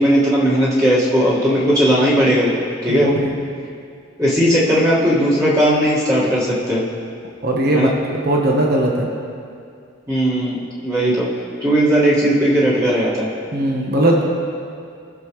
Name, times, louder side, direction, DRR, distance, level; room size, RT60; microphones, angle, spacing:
voice 1, 0.0-3.1 4.2-6.9 7.7-7.9 10.1-11.3 11.6-13.3, equal, 15° right, -8 dB, 1.9 m, -17 dB
voice 2, 2.9-3.3 7.4-7.9 8.2-9.1 13.5-14.2, right 1 dB, 50° right, -1 dB, 1.2 m, -18 dB
18.0 x 6.8 x 3.2 m, 2.3 s
head